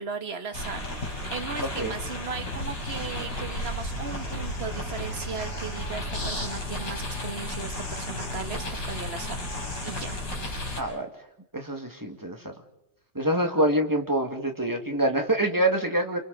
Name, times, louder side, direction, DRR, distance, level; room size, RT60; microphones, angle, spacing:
voice 1, 0.0-9.5 9.8-10.2, right 5 dB, 35° right, 8 dB, 1.4 m, -37 dB
sound 1, 0.5-10.8, left 1 dB, 70° left, 6.6 m, -33 dB
voice 2, 1.6-1.9 10.8-11.3 11.5-12.5 13.1-16.2, right 1 dB, 10° right, 4 dB, 1.9 m, -26 dB
sound 2, 3.5-9.8, left 6 dB, 55° right, 8.5 m, -50 dB
29.5 x 28.0 x 4.0 m, 0.84 s
omnidirectional pair, 2.0 m